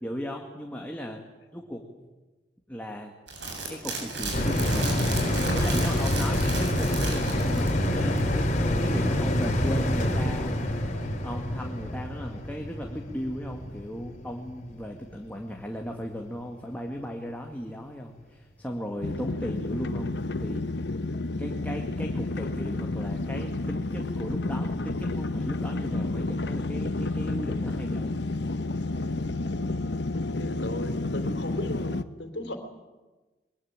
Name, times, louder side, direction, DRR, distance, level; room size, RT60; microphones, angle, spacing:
voice 1, 0.0-1.2 1.5-2.1 2.7-3.1 3.7-5.2 5.5-8.2 8.8-10.8 11.2-20.7 21.4-28.2, equal, 10° left, 1 dB, 2.0 m, -36 dB
sound 1, 3.3-7.9 8.2-8.3, right 2 dB, 75° right, 8.0 m, -33 dB
sound 2, 4.3-15.0 15.4-15.5, left 1 dB, 45° left, 3.0 m, -27 dB
sound 3, 19.0-32.0, left 2 dB, 70° left, 1.0 m, -30 dB
voice 2, 30.3-32.6, left 1 dB, 90° left, 7 dB, 3.5 m, -35 dB
22.5 x 22.0 x 8.8 m, 1.2 s
head